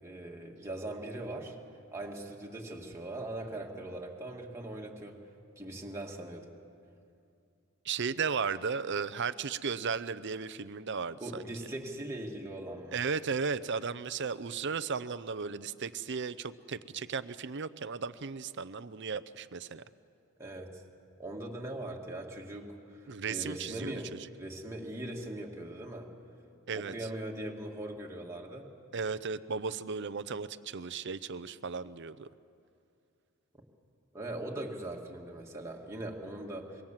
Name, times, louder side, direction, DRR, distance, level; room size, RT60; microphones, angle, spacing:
voice 1, 0.0-1.6 1.9-5.2 5.6-6.5 11.2-13.0 20.4-20.8 21.2-26.1 26.7-28.7 34.1-36.8, right 1 dB, 15° right, -1 dB, 2.2 m, -40 dB
voice 2, 7.8-11.5 12.9-19.8 23.1-24.3 26.7-26.9 28.9-32.3, right 5 dB, 55° right, 14 dB, 0.7 m, -35 dB
25.5 x 23.0 x 7.4 m, 2.5 s
head